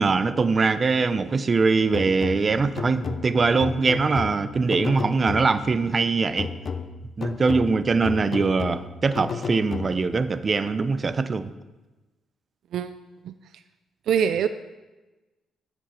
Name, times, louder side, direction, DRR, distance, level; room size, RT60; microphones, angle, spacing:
voice 1, 0.0-6.5 7.2-11.5, right 4 dB, 35° right, 13 dB, 0.7 m, -22 dB
sound 1, 1.9-5.8 6.4-10.3, left 5 dB, 50° left, 0.7 m, -33 dB
voice 2, 14.1-14.5, right 8 dB, 75° right, 11 dB, 0.5 m, -23 dB
11.0 x 8.0 x 5.8 m, 1.1 s
cardioid pair, 90°, 0 cm